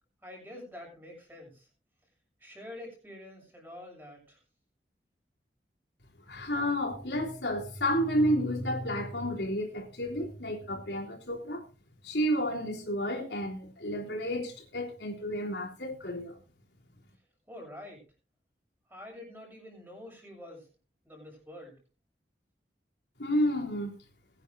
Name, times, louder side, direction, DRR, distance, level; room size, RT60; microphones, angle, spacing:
voice 1, 0.2-1.7 2.4-4.4 17.5-18.0 18.9-20.7 21.0-21.7, left 1 dB, 10° right, 7.4 m, -46 dB
voice 2, 6.3-11.6 12.0-16.4 23.2-23.9, equal, 75° left, 3.8 m, -31 dB
22.0 x 10.0 x 2.7 m
head